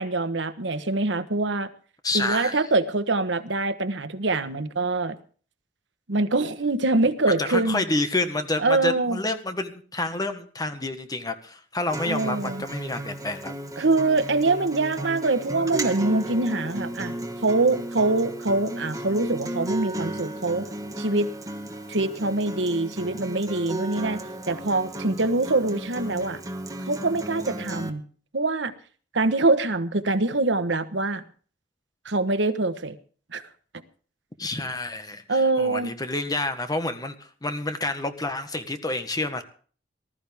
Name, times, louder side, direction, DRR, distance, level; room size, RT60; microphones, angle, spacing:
voice 1, 0.0-1.7 2.1-5.2 6.1-7.8 8.6-9.2 12.1-12.6 13.8-17.1 17.4-20.7 21.0-21.3 21.9-24.2 24.5-26.4 26.9-28.0 28.3-28.7 29.1-31.2 32.0-33.0 33.3-33.4 35.3-35.9, right 2 dB, 75° right, 10 dB, 1.2 m, -24 dB
voice 2, 2.0-2.6 7.4-13.6 34.4-37.1 37.4-39.4, left 2 dB, 20° left, 8 dB, 1.5 m, -29 dB
Acoustic guitar, 11.9-27.9, right 1 dB, 20° right, 1.5 m, -34 dB
19.5 x 13.5 x 3.6 m, 0.42 s
head